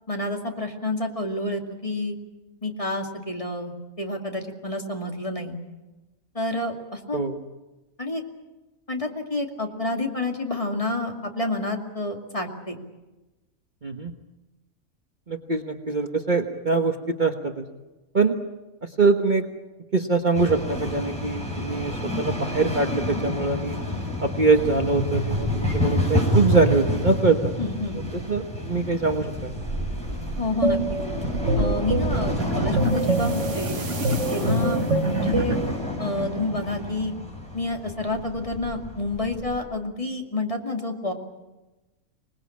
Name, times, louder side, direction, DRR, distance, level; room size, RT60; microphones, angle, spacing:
voice 1, 0.1-2.2 2.6-3.7 4.0-5.6 6.3-7.2 8.0-8.2 8.9-12.8 27.6-28.0 30.4-30.8 31.6-33.8 34.3-35.6 36.0-37.1 37.5-41.1, left 2 dB, 25° left, 2 dB, 2.5 m, -29 dB
voice 2, 13.8-14.1 15.3-17.6 18.1-18.4 19.0-19.5 19.9-23.8 24.2-27.5 28.3-29.5 34.6-34.8, right 4 dB, 35° right, 4 dB, 1.4 m, -23 dB
sound 1, 20.3-39.6, left 1 dB, 5° left, 7.9 m, -29 dB
sound 2, 30.6-35.8, right 2 dB, 55° right, 2.0 m, -25 dB
26.0 x 20.0 x 8.6 m, 1.1 s
omnidirectional pair, 1.5 m